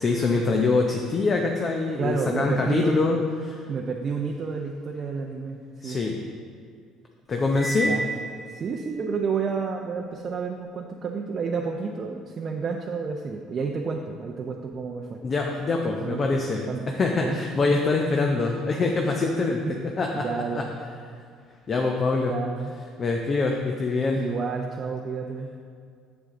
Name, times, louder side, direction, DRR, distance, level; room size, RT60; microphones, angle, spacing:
voice 1, 0.0-3.6 5.8-6.2 7.3-7.9 15.2-20.3 20.5-20.6 21.7-22.3 23.0-24.3, left 3 dB, 40° left, 1 dB, 0.7 m, -24 dB
voice 2, 2.0-2.9 3.7-6.1 7.8-8.1 8.5-15.2 16.0-16.8 17.1-17.4 19.6-19.8 20.1-20.8 22.3-22.7 24.2-25.5, right 5 dB, 45° right, 1 dB, 0.6 m, -30 dB
Cymbal, 7.5-9.0, right 1 dB, ahead, 0.5 m, -31 dB
7.1 x 6.9 x 3.8 m, 2.2 s
supercardioid pair, 80°, 0 cm